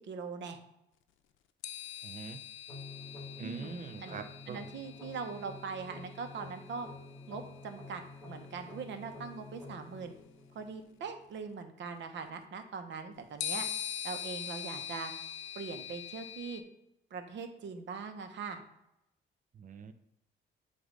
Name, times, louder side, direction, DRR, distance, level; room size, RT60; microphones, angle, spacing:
voice 1, 0.1-0.6 3.4-4.2 4.5-6.9 7.3-10.2 10.5-13.7 14.0-15.1 15.5-16.6 17.1-18.6, right 5 dB, 65° right, 7 dB, 1.0 m, -41 dB
sound 1, 1.6-7.3 8.6-8.7 13.4-16.6, left 9 dB, 85° left, 0.6 m, -42 dB
voice 2, 2.0-2.4 3.4-4.7 19.5-19.9, right 6 dB, 40° right, 8 dB, 0.6 m, -44 dB
sound 2, 2.7-11.7, left 3 dB, ahead, 2.3 m, -49 dB
7.8 x 2.6 x 5.2 m, 0.85 s
cardioid pair, 90°, 20 cm